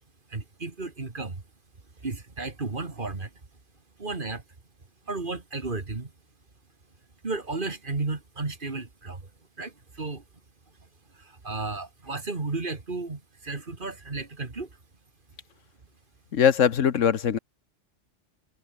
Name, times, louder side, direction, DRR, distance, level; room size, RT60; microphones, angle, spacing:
voice 1, 0.3-1.4 2.0-3.3 4.0-4.4 5.1-6.1 7.2-9.3 9.6-10.2 11.1-14.8, right 3 dB, 45° right, 2.3 m, -33 dB
voice 2, 16.3-17.4, left 8 dB, 85° left, 1.5 m, -21 dB
omnidirectional pair, 1.3 m